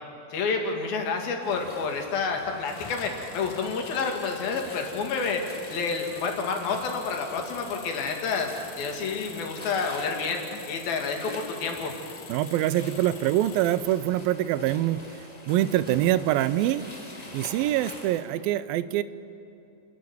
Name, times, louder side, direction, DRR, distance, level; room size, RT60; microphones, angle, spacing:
voice 1, 0.3-11.9, left 4 dB, 80° left, 3 dB, 4.1 m, -29 dB
sound 1, 1.4-18.2, left 1 dB, 10° left, 2.8 m, -45 dB
sound 2, 2.6-14.0, left 7 dB, 60° left, 2.7 m, -46 dB
voice 2, 12.3-15.0 15.5-16.8 17.3-19.0, right 13 dB, 85° right, 16 dB, 2.4 m, -24 dB
30.0 x 11.5 x 9.6 m, 2.8 s
omnidirectional pair, 4.2 m